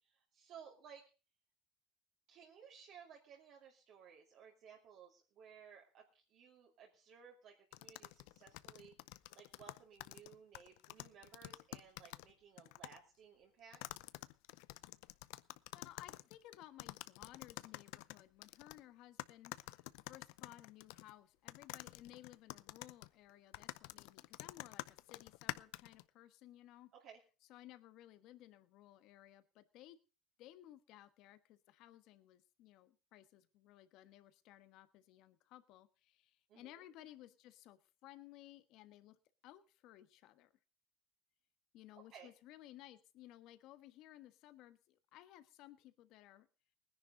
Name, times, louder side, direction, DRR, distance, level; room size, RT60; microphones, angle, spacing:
voice 1, 0.1-1.0 2.3-8.9 9.3-13.8 26.9-27.2 36.5-36.8 42.1-42.3, right 7 dB, 55° right, -1 dB, 2.5 m, -58 dB
sound 1, 7.7-12.3 12.6-13.0 13.7-18.8 19.2-21.1 21.5-26.0, left 21 dB, 80° left, 0.6 m, -49 dB
voice 2, 15.7-26.9 27.5-30.0 30.4-39.2 39.4-40.5 41.7-46.5, left 14 dB, 60° left, 12 dB, 1.3 m, -58 dB
19.5 x 10.5 x 3.9 m, 0.33 s
cardioid pair, 140°, 0 cm